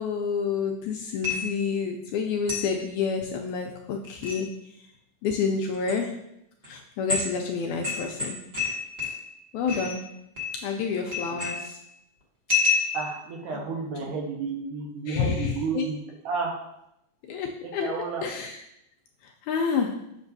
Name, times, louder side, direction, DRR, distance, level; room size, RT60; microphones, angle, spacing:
voice 1, 0.0-4.6 5.2-6.2 6.7-8.4 9.5-10.1 10.6-11.8 13.5-13.6 14.0-14.1 15.1-15.8 17.3-17.9 18.2-18.6 19.2-20.1, left 5 dB, 80° left, 2 dB, 1.7 m, -29 dB
sound 1, 1.2-1.7 2.5-2.8 4.0-4.4 5.7-5.9 6.6-6.7 7.1-7.4 7.8-9.4 9.7-10.0 10.4-10.8 11.1-11.8 12.5-13.2, left 4 dB, 30° right, 1.1 m, -29 dB
voice 2, 12.9-16.0 16.2-16.6 17.6-18.2, right 4 dB, 80° right, -1 dB, 2.7 m, -31 dB
7.2 x 6.1 x 2.7 m, 0.80 s
omnidirectional pair, 3.8 m